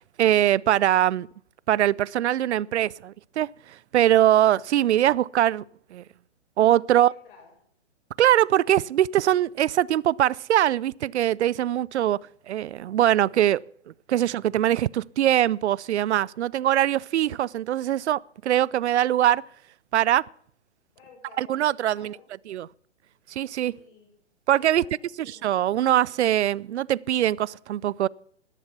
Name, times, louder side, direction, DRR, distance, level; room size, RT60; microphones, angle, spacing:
voice 1, 0.2-1.3 1.7-5.6 5.9-6.0 6.6-7.1 8.2-12.2 12.5-13.6 14.1-19.4 19.9-20.3 21.4-22.2 22.5-22.7 23.3-23.8 24.5-24.8 25.3-28.1, right 12 dB, 70° right, 0.5 m, -22 dB
voice 2, 6.9-7.5 20.9-22.3 23.7-24.2 24.6-25.5, left 5 dB, 45° left, 7.2 m, -53 dB
13.5 x 11.5 x 5.9 m
hypercardioid pair, 135°, 35 cm